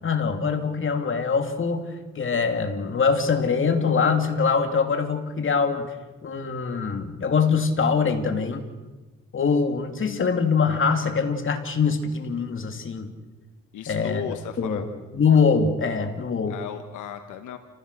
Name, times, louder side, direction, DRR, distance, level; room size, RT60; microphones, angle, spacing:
voice 1, 0.0-5.9 6.2-8.7 9.3-13.1 13.9-14.2 14.6-14.9 15.1-16.6, left 5 dB, 40° left, 5 dB, 2.7 m, -23 dB
voice 2, 13.7-14.9 16.5-17.6, left 9 dB, 80° left, 8 dB, 1.4 m, -36 dB
28.5 x 15.5 x 6.7 m, 1.2 s
cardioid pair, 90°, 30 cm